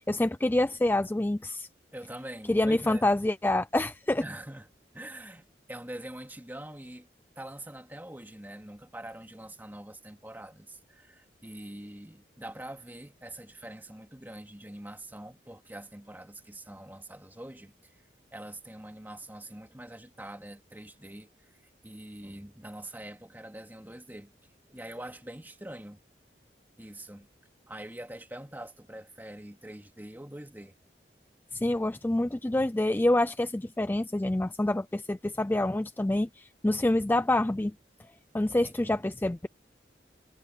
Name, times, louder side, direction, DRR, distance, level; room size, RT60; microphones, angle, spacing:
voice 1, 0.0-1.7 2.5-4.2 31.5-37.7 38.3-39.5, left 1 dB, 10° left, 0.4 m, -27 dB
voice 2, 1.9-3.1 4.2-4.7 4.9-7.1 7.4-17.9 18.3-21.5 21.8-24.3 24.7-26.0 26.8-27.3 27.7-30.7 38.6-39.0, right 1 dB, 10° right, 2.4 m, -44 dB
head